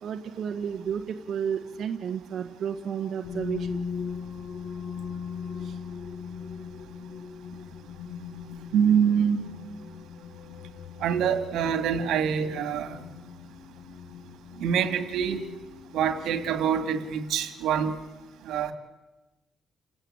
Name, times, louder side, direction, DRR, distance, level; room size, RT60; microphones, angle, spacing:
voice 1, 0.0-3.9 5.6-5.8, right 7 dB, 50° right, 3 dB, 1.4 m, -32 dB
sound 1, 3.2-16.8, left 6 dB, 65° left, 1.9 m, -40 dB
voice 2, 8.7-9.5 11.0-13.0 14.6-15.4 15.9-17.9 18.5-18.7, right 8 dB, 80° right, 8 dB, 2.5 m, -25 dB
29.0 x 17.0 x 8.9 m, 1.1 s
cardioid pair, 150°, 0 cm